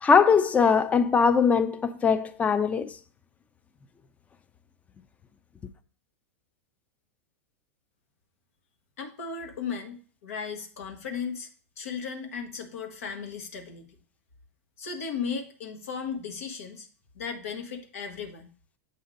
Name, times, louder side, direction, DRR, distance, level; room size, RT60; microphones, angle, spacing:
voice 1, 0.0-3.0, left 6 dB, 20° left, 0.5 m, -21 dB
voice 2, 9.0-11.5 11.8-13.9 14.8-16.9 17.1-18.5, left 6 dB, 80° left, 1.2 m, -36 dB
7.8 x 2.7 x 5.1 m
hypercardioid pair, 115°, 8 cm